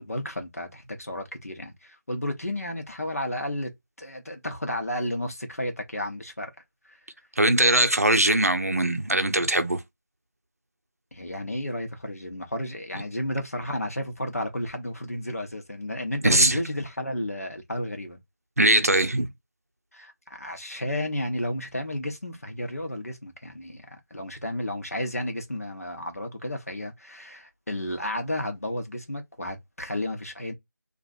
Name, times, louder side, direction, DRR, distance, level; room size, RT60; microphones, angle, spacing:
voice 1, 0.0-3.7 4.0-6.5 6.9-7.0 11.1-18.2 19.9-20.1 20.4-30.5, left 1 dB, 55° left, 1.0 m, -32 dB
voice 2, 7.4-9.8 16.2-16.6 18.6-19.3, right 1 dB, 55° right, 0.6 m, -21 dB
2.9 x 2.5 x 2.5 m
figure-of-eight pair, 175°, 10 cm